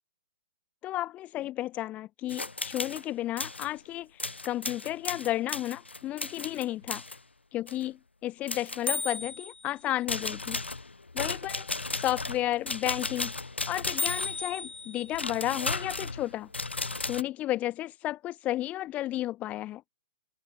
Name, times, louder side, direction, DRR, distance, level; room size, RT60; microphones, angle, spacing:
voice 1, 0.8-4.1 4.4-7.0 7.5-8.0 8.2-10.6 11.1-11.7 12.0-13.3 13.7-16.5 17.0-19.8, left 14 dB, 25° left, 2.5 m, -32 dB
sound 1, 2.3-3.0 3.4-3.7 4.2-7.2 7.7-7.9 8.5-9.6 10.1-17.2, left 3 dB, 85° left, 0.9 m, -34 dB
figure-of-eight pair, 125°, 6 cm